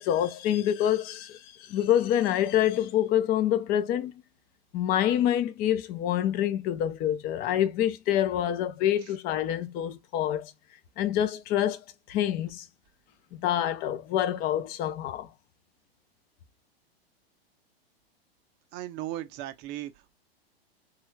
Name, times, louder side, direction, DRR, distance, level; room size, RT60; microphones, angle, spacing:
voice 1, 0.0-4.1 4.7-10.5 11.0-11.8 12.1-12.6 13.3-15.3, left 11 dB, 30° left, 0.5 m, -26 dB
voice 2, 18.7-20.1, right 14 dB, 35° right, 0.6 m, -37 dB
3.1 x 2.3 x 3.1 m
hypercardioid pair, 110°, 31 cm